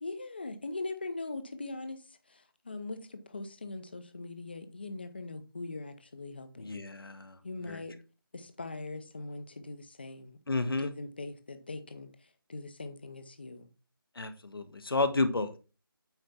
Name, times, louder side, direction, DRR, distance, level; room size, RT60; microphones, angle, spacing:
voice 1, 0.0-2.0 2.3-6.7 7.4-7.9 8.3-12.1 12.5-13.7, left 3 dB, 25° left, 9 dB, 0.7 m, -41 dB
voice 2, 6.6-7.4 7.7-7.8 10.5-10.9 14.1-15.6, left 3 dB, 75° left, 9 dB, 1.3 m, -31 dB
9.0 x 3.4 x 5.5 m, 0.33 s
figure-of-eight pair, 180°, 12 cm